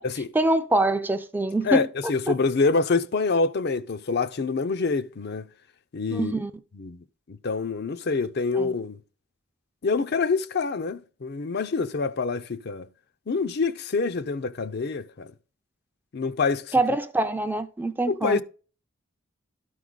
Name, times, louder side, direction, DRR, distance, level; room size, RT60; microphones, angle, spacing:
voice 1, 0.3-1.8 2.3-2.4 6.1-6.5 8.6-8.7 16.7-18.4, right 2 dB, 10° right, 0.4 m, -24 dB
voice 2, 1.6-5.5 5.9-6.3 6.7-9.0 9.8-12.9 13.3-15.3 16.1-16.7 18.1-18.4, left 4 dB, 55° left, 0.5 m, -26 dB
12.5 x 4.8 x 3.9 m
head